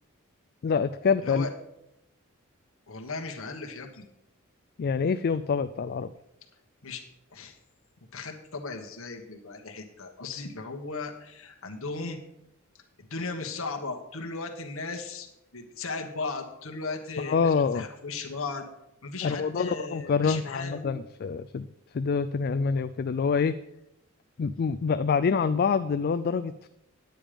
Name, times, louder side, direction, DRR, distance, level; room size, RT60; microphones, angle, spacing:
voice 1, 0.6-1.5 4.8-6.1 17.3-17.9 19.2-21.7 21.9-23.6 24.4-26.7, left 5 dB, 45° left, 10 dB, 0.4 m, -26 dB
voice 2, 2.9-4.1 6.8-7.0 7.3-7.6 8.1-12.2 13.1-15.3 15.5-18.6 19.0-21.0, left 3 dB, 70° left, 3 dB, 1.4 m, -36 dB
9.3 x 8.9 x 5.1 m, 0.84 s
head